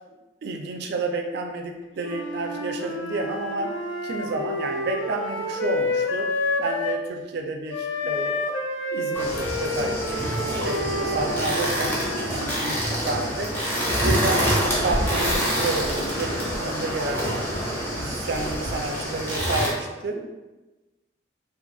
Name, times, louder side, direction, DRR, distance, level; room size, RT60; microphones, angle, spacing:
voice 1, 0.4-3.7 4.0-6.3 6.6-8.4 8.9-11.9 12.3-13.5 14.0-17.2 17.9-20.3, right 2 dB, 55° right, 4 dB, 0.3 m, -30 dB
Wind instrument woodwind instrument, 2.0-7.0 7.7-12.7, left 2 dB, 80° left, 0.4 m, -29 dB
sound 1, 9.1-19.7, equal, 10° left, 0.5 m, -26 dB
2.4 x 2.2 x 2.5 m, 1.1 s
head